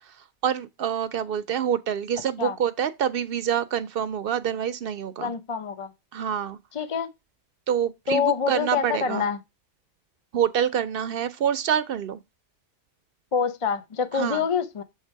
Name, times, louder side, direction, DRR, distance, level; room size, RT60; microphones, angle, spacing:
voice 1, 0.4-5.3 6.1-6.6 7.7-9.3 10.3-12.2 14.1-14.4, right 9 dB, 60° right, 0.6 m, -26 dB
voice 2, 5.2-5.9 6.7-7.1 8.1-9.4 13.3-14.8, left 6 dB, 50° left, 0.4 m, -26 dB
7.4 x 3.3 x 4.5 m
omnidirectional pair, 1.2 m